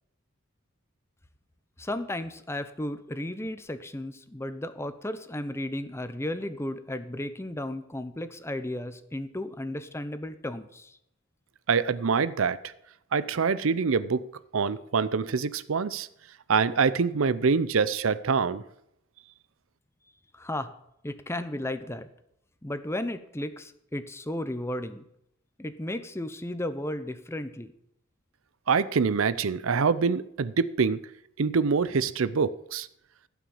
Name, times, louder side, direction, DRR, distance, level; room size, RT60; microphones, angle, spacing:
voice 1, 1.8-11.0 20.3-20.7 21.0-22.1 22.6-25.0 25.6-27.7, left 1 dB, 10° left, 11 dB, 0.7 m, -34 dB
voice 2, 11.7-12.6 13.1-14.3 14.5-16.1 16.5-18.6 28.7-31.0 31.4-32.9, right 5 dB, 70° right, 16 dB, 0.6 m, -25 dB
15.0 x 6.1 x 7.1 m, 0.77 s
head